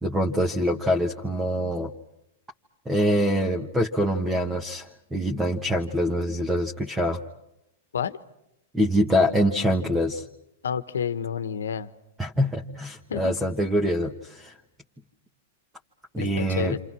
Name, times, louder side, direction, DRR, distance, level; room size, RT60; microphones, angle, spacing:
voice 1, 0.0-1.9 2.8-7.2 8.7-10.2 12.2-14.5 16.1-16.8, equal, 10° right, 2 dB, 1.6 m, -24 dB
voice 2, 10.6-11.9 13.1-13.3 16.2-16.8, left 7 dB, 80° left, 13 dB, 1.2 m, -29 dB
28.5 x 27.5 x 6.2 m, 0.84 s
hypercardioid pair, 110°, 0 cm